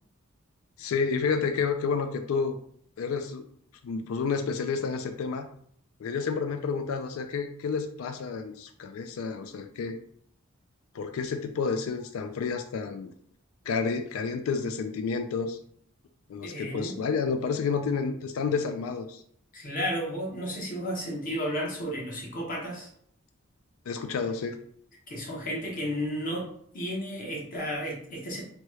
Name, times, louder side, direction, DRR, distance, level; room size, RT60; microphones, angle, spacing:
voice 1, 0.8-2.6 3.0-3.4 3.8-5.4 6.0-10.0 10.9-13.1 13.7-15.6 16.3-19.2 23.9-24.6, left 5 dB, 75° left, 7 dB, 0.3 m, -30 dB
voice 2, 16.4-17.0 19.5-22.9 25.1-26.5 26.7-28.4, equal, 40° left, -2 dB, 0.9 m, -33 dB
2.9 x 2.3 x 3.0 m, 0.63 s
head